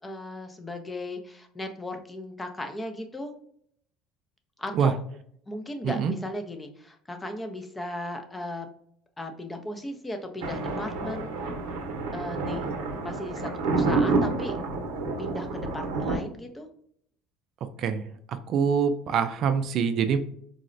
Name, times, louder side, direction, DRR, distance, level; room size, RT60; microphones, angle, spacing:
voice 1, 0.0-3.3 4.6-5.0 5.5-8.7 9.2-11.3 12.1-12.7 13.0-14.6 15.2-16.7, left 1 dB, 15° left, 6 dB, 0.5 m, -36 dB
Thunder, 10.4-16.2, right 3 dB, 85° right, 0.7 m, -29 dB
voice 2, 18.5-20.2, right 6 dB, 55° right, 9 dB, 0.3 m, -24 dB
3.9 x 2.0 x 2.5 m, 0.67 s
supercardioid pair, 105°, 0 cm